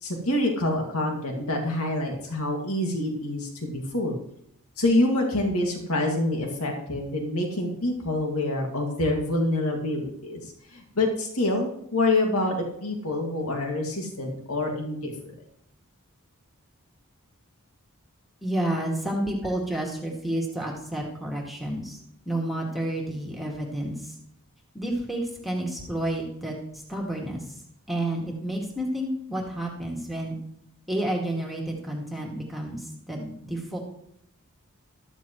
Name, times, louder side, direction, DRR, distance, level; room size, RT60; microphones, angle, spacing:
voice 1, 0.0-4.2 4.8-10.4 10.7-15.3, left 1 dB, 75° left, 1 dB, 2.2 m, -26 dB
voice 2, 18.4-22.0 22.3-24.2 24.7-27.5 27.9-30.3 30.9-33.8, right 1 dB, ahead, -2 dB, 2.1 m, -30 dB
13.0 x 13.0 x 3.1 m, 0.73 s
head